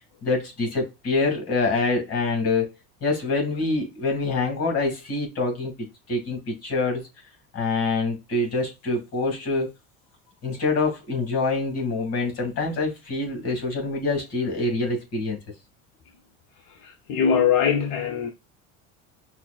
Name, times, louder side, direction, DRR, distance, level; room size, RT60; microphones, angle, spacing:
voice 1, 0.2-2.7 3.0-5.7 6.1-7.0 7.5-9.7 10.4-15.4, left 3 dB, 40° left, 2.5 m, -25 dB
voice 2, 16.8-18.3, left 7 dB, 65° left, 0.7 m, -22 dB
5.7 x 2.6 x 2.4 m
supercardioid pair, 110°, 36 cm